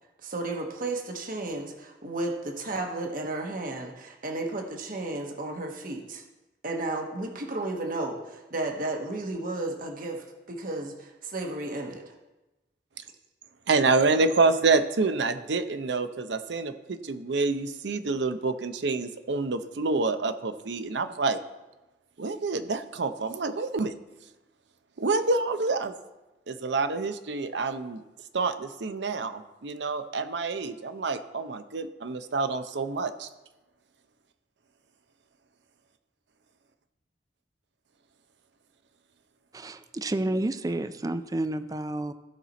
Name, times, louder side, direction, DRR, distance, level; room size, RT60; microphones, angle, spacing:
voice 1, 0.2-6.2 6.6-12.2, right 2 dB, 50° right, 2 dB, 1.2 m, -33 dB
voice 2, 13.7-21.4 22.2-23.9 25.0-26.0 26.5-28.0 28.3-33.3, right 3 dB, 70° right, 10 dB, 0.6 m, -27 dB
voice 3, 39.5-42.1, right 1 dB, 20° right, 11 dB, 0.4 m, -30 dB
15.5 x 5.8 x 4.1 m, 1.0 s
head